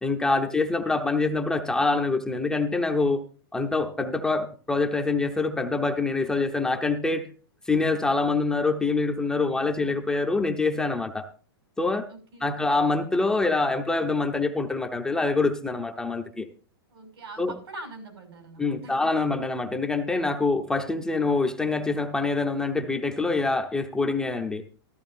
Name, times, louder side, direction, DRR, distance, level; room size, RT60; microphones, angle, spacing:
voice 1, 0.0-3.2 3.5-7.3 7.7-11.3 11.8-12.1 12.4-16.5 17.4-17.5 18.6-24.6, left 3 dB, 5° left, 4 dB, 0.7 m, -25 dB
voice 2, 9.5-10.1 12.1-12.7 16.1-16.2 16.9-19.1, right 2 dB, 85° right, 4 dB, 6.0 m, -44 dB
14.0 x 13.5 x 2.6 m, 0.38 s
hypercardioid pair, 160°, 13 cm